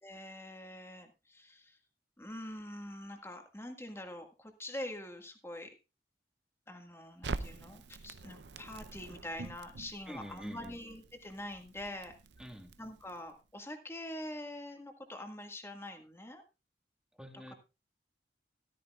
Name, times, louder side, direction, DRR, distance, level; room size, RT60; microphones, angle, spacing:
voice 1, 0.0-1.8 2.2-5.7 6.7-12.2 12.8-16.4, left 1 dB, 15° left, 5 dB, 1.8 m, -45 dB
Crackle, 7.2-13.4, right 3 dB, 85° right, 0.7 m, -45 dB
voice 2, 10.1-10.8 12.4-12.7 17.2-17.5, equal, 5° right, 4 dB, 1.7 m, -47 dB
13.5 x 13.0 x 2.4 m, 0.28 s
head